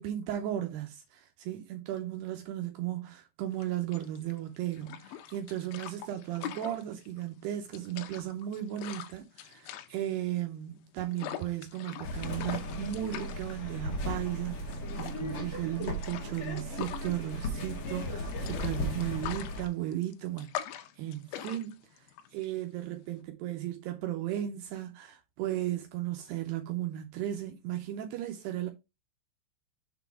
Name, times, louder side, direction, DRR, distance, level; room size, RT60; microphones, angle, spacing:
voice 1, 0.0-28.7, right 12 dB, 80° right, 2.5 m, -35 dB
sound 1, 3.5-23.2, left 11 dB, 85° left, 3.0 m, -44 dB
sound 2, 12.0-19.7, left 1 dB, 60° left, 1.9 m, -36 dB
6.8 x 4.0 x 4.6 m
omnidirectional pair, 5.2 m